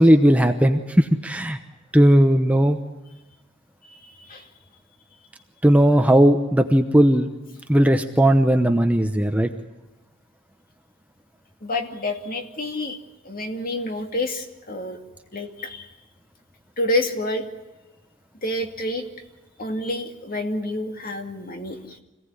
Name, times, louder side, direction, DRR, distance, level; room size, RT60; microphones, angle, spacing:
voice 1, 0.0-1.6 1.9-2.8 5.6-7.3 7.7-9.5, equal, 5° right, 6 dB, 0.9 m, -17 dB
voice 2, 4.0-4.4 11.6-13.0 13.2-15.0 15.3-15.9 16.8-17.4 18.4-19.0 19.6-22.0, left 1 dB, 40° left, 4 dB, 2.4 m, -28 dB
26.0 x 17.0 x 9.8 m, 1.1 s
head